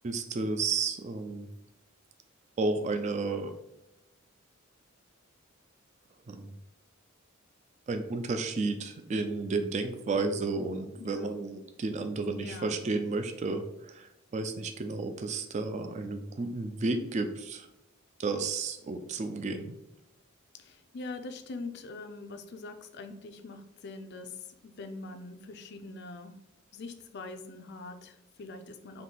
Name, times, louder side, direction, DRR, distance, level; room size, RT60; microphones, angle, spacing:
voice 1, 0.0-1.5 2.6-3.5 6.3-6.6 7.9-17.7 18.2-19.7, right 3 dB, 35° right, 7 dB, 0.3 m, -32 dB
voice 2, 10.9-11.3 12.3-12.8 20.6-24.3 24.6-26.4 26.7-29.0, left 3 dB, 55° left, 8 dB, 0.4 m, -43 dB
3.7 x 2.7 x 3.8 m, 0.91 s
head